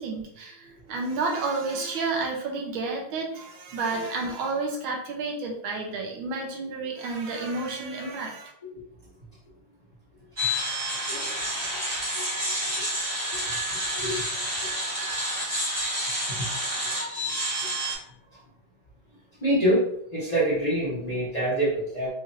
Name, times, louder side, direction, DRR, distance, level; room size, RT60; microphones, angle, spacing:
voice 1, 0.0-8.5, right 3 dB, 75° right, 1 dB, 1.5 m, -31 dB
sound 1, 10.4-17.9, equal, 20° right, 1.2 m, -29 dB
voice 2, 19.4-19.9 20.1-22.1, right 1 dB, 25° left, -10 dB, 1.0 m, -25 dB
4.3 x 2.6 x 2.6 m, 0.70 s
omnidirectional pair, 2.3 m